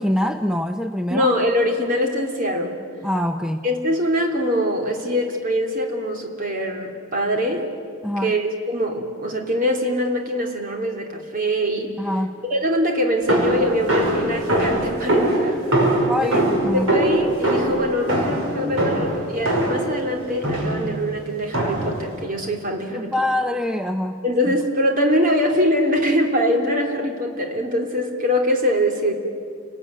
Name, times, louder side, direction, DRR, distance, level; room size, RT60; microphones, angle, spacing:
voice 1, 0.0-1.3 3.0-3.7 8.0-8.3 12.0-12.3 16.1-16.9 22.9-24.5, left 1 dB, 5° right, 6 dB, 0.6 m, -24 dB
voice 2, 1.1-2.8 3.6-7.7 8.2-11.9 12.4-15.6 16.2-16.4 16.7-23.2 24.2-29.1, equal, 40° right, 2 dB, 3.1 m, -23 dB
sound 1, 13.3-19.9 20.4-20.9 21.5-22.0, right 1 dB, 70° right, 6.0 m, -21 dB
29.5 x 20.0 x 9.6 m, 2.4 s
head